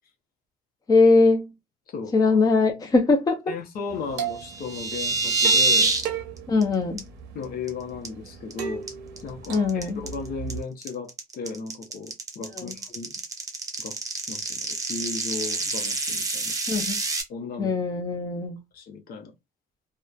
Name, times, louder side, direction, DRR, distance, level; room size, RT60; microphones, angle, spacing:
voice 1, 0.9-1.5 2.1-3.4 6.5-7.0 9.5-10.0 12.6-12.7 16.7-17.0 17.6-18.6, left 3 dB, 20° left, 0.6 m, -21 dB
voice 2, 1.9-2.4 3.5-5.9 7.3-8.9 9.2-13.1 13.8-14.0 14.3-16.5 17.3-17.8 18.7-19.3, left 4 dB, 60° left, 0.7 m, -36 dB
sound 1, 3.9-10.6, right 8 dB, 90° right, 0.7 m, -37 dB
sound 2, 4.4-6.0 6.4-6.6 7.0-7.1 7.4-7.7 8.0-8.5 8.9-17.2, right 3 dB, 20° right, 0.7 m, -26 dB
2.8 x 2.1 x 2.3 m
cardioid pair, 110°, 17 cm